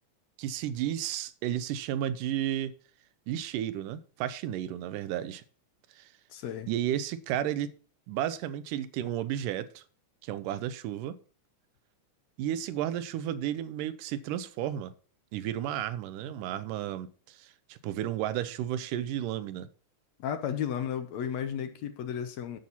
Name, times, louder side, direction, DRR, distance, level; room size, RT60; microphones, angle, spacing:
voice 1, 0.4-2.7 3.3-5.4 5.9-6.1 6.7-7.7 8.1-9.8 10.2-11.2 12.4-14.9 15.3-19.7, right 11 dB, 85° right, 2.3 m, -33 dB
voice 2, 6.3-6.7 20.2-22.6, left 8 dB, 70° left, 1.8 m, -33 dB
9.3 x 7.0 x 4.0 m
omnidirectional pair, 3.7 m